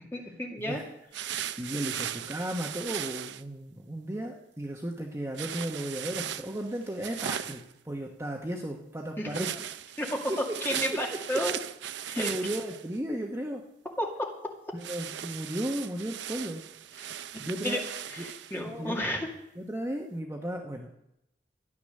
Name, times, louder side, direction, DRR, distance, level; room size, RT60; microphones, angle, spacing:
voice 1, 0.1-0.8 1.2-1.6 9.2-9.5 10.0-10.3 10.6-11.6 12.1-12.3 14.0-14.3 17.6-17.8 18.1-19.3, left 1 dB, 10° left, 0 dB, 2.2 m, -32 dB
sound 1, 1.1-3.4 5.3-7.7 9.3-13.0 14.8-18.6, right 10 dB, 70° right, 0.5 m, -38 dB
voice 2, 1.6-9.5 11.3-11.6 12.2-13.6 14.7-16.6 17.4-17.8 18.2-18.3 18.8-19.1 19.5-20.9, right 1 dB, 15° right, 1 dB, 1.1 m, -35 dB
13.5 x 10.5 x 6.5 m, 0.83 s
head